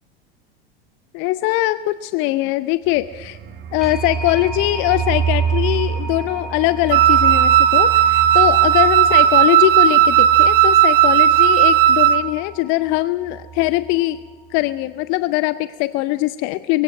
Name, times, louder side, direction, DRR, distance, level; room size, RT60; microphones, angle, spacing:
voice 1, 1.1-3.4 3.7-14.2 14.5-16.8, left 18 dB, 40° left, 15 dB, 0.6 m, -21 dB
sound 1, 2.9-12.6 12.8-13.0 13.2-13.7, right 7 dB, 35° right, 2.3 m, -28 dB
sound 2, 3.8-14.4, right 1 dB, ahead, 4.1 m, -38 dB
Wind instrument woodwind instrument, 6.9-12.3, right 11 dB, 60° right, 1.1 m, -14 dB
23.5 x 16.0 x 7.6 m, 1.4 s
figure-of-eight pair, 85°, 31 cm